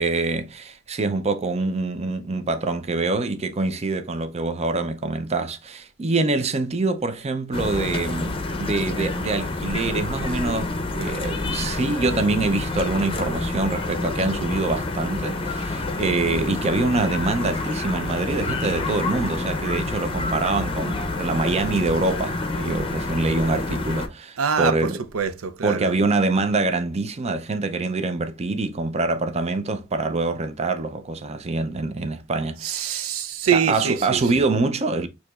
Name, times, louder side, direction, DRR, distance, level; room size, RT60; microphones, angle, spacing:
voice 1, 0.0-25.0 25.6-33.1 33.5-35.1, right 3 dB, 30° right, 0.5 m, -25 dB
sound 1, 7.5-24.1, left 2 dB, 25° left, 0.6 m, -28 dB
voice 2, 24.4-25.9 32.6-34.2, right 7 dB, 85° right, 0.6 m, -24 dB
6.4 x 2.9 x 2.4 m
head